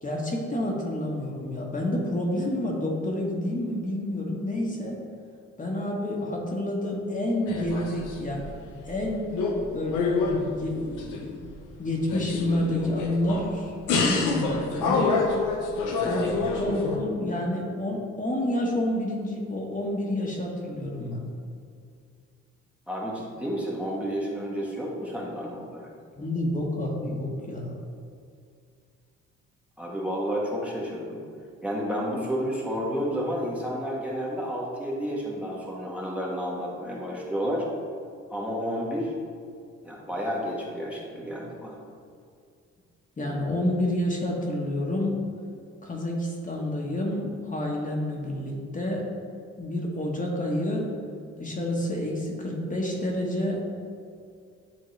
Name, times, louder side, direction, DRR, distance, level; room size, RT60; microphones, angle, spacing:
voice 1, 0.0-5.0 5.6-8.5 8.9-9.3 9.7-11.4 11.8-15.1 16.0-21.2 26.2-27.8 43.2-45.2 45.8-49.0 49.6-50.9 51.4-53.6, left 1 dB, 25° left, -2 dB, 1.2 m, -29 dB
sound 1, 7.5-8.5 8.9-9.6 9.9-11.5 12.0-13.5 13.9-17.0, left 4 dB, 90° left, 0.8 m, -27 dB
voice 2, 22.9-25.9 29.8-31.2 31.6-37.7 38.3-39.1 39.8-41.8, equal, 5° right, -4 dB, 1.1 m, -31 dB
9.3 x 3.5 x 3.2 m, 2.3 s
cardioid pair, 90°, 30 cm